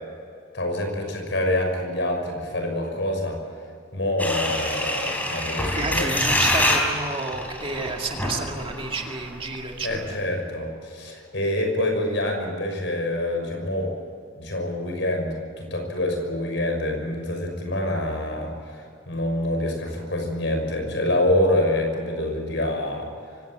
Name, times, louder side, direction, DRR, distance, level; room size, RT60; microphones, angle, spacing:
voice 1, 0.5-3.4 3.9-6.1 9.8-13.9 14.4-23.1, left 1 dB, 65° left, 3 dB, 6.0 m, -26 dB
sound 1, 4.2-9.2 9.6-9.7 9.8-10.1, left 1 dB, 10° left, 3.7 m, -26 dB
voice 2, 5.7-10.0, right 3 dB, 25° right, 2 dB, 2.2 m, -30 dB
24.5 x 17.5 x 9.0 m, 2.4 s
head